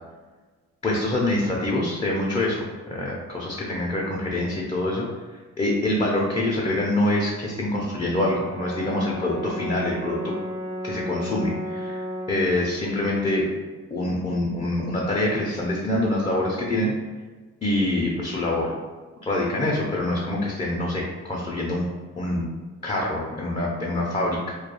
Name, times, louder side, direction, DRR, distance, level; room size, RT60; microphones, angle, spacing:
voice 1, 0.8-10.3 10.8-13.5 13.9-16.9 17.6-18.8 19.2-21.9 22.2-22.5 22.8-24.5, left 1 dB, 20° left, -4 dB, 0.4 m, -25 dB
Brass instrument, 8.1-12.4, equal, 85° right, 0.6 m, -33 dB
2.2 x 2.2 x 2.9 m, 1.3 s
cardioid pair, 90°, 30 cm